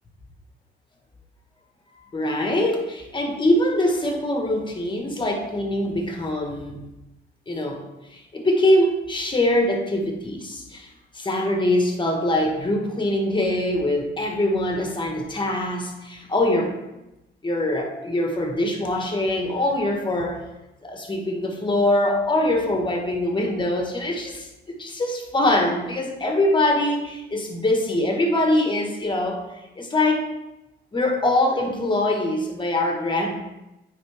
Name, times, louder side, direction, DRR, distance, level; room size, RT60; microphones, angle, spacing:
voice 1, 2.1-6.8 7.5-16.8 17.4-20.4 20.8-29.4 29.8-30.3 30.9-33.4, left 1 dB, 25° left, 2 dB, 1.4 m, -23 dB
9.2 x 3.8 x 3.5 m, 0.96 s
cardioid pair, 90°, 20 cm